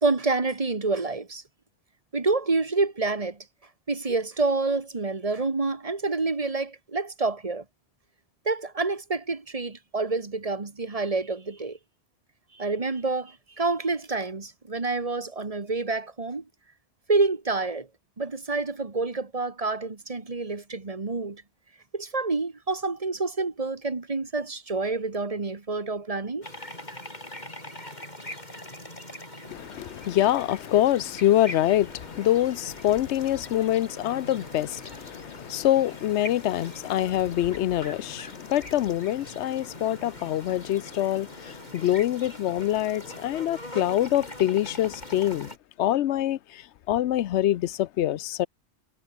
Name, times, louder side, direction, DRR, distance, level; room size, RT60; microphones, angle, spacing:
voice 1, 0.0-1.4 2.1-3.4 3.9-7.6 8.4-11.8 12.5-16.4 17.1-17.9 18.2-21.4 21.9-26.5, right 3 dB, 30° right, 1.6 m, -28 dB
sound 1, 26.4-45.6, left 1 dB, 40° left, 7.6 m, -42 dB
voice 2, 29.5-48.5, left 13 dB, 80° left, 0.9 m, -25 dB
omnidirectional pair, 1.1 m